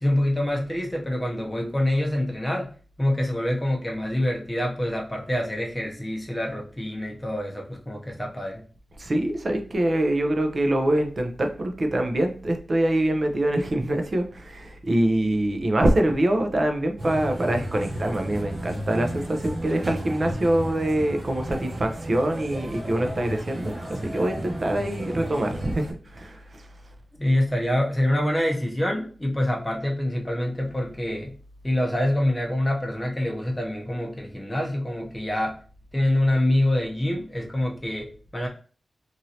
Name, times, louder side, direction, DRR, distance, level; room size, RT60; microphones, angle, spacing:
voice 1, 0.0-2.7 3.0-8.6 27.2-31.3 31.6-35.6 35.9-38.5, left 1 dB, 10° left, 0 dB, 0.7 m, -26 dB
voice 2, 9.0-26.7, right 1 dB, 45° right, 4 dB, 0.5 m, -24 dB
sound 1, 17.0-25.9, right 1 dB, 60° right, 0.9 m, -34 dB
3.1 x 2.6 x 2.8 m, 0.40 s
wide cardioid pair, 105°, 0 cm